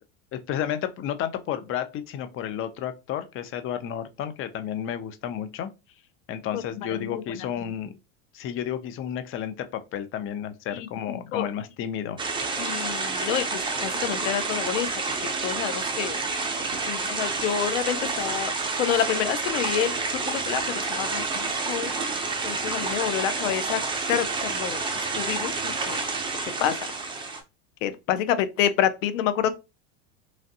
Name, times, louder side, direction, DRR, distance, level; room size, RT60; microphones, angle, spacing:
voice 1, 0.3-5.7 6.3-7.9 8.3-12.2, left 9 dB, 35° left, 0.5 m, -32 dB
voice 2, 6.9-7.7 10.7-11.5 12.6-14.9 15.2-16.2 16.8-18.5 18.8-20.0 20.3-21.9 22.4-23.8 24.1-26.0 26.6-26.8 27.8-29.6, left 10 dB, 90° left, 0.5 m, -28 dB
sound 1, 12.2-27.4, right 4 dB, 15° right, 0.6 m, -29 dB
3.1 x 2.5 x 2.7 m
supercardioid pair, 110°, 38 cm